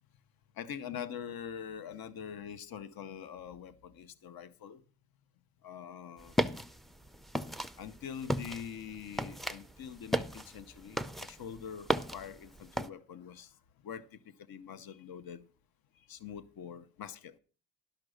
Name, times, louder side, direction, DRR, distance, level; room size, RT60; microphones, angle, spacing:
voice 1, 0.5-4.8 5.6-6.4 7.8-15.4 15.9-17.4, left 8 dB, 60° left, 0.9 m, -44 dB
sound 1, 6.2-12.9, equal, ahead, 0.4 m, -36 dB
12.0 x 5.9 x 6.4 m
cardioid pair, 105°, 40 cm